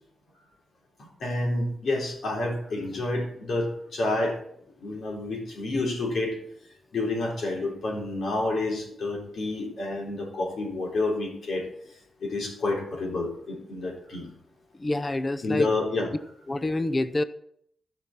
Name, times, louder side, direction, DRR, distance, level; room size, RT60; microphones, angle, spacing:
voice 1, 1.2-4.4 4.8-6.4 6.9-11.7 12.2-14.3 15.4-16.1, left 2 dB, 60° left, -1 dB, 3.8 m, -29 dB
voice 2, 14.8-15.7 16.5-17.2, left 2 dB, 20° left, 14 dB, 0.5 m, -27 dB
14.5 x 6.0 x 5.9 m, 0.68 s
wide cardioid pair, 155°, 0 cm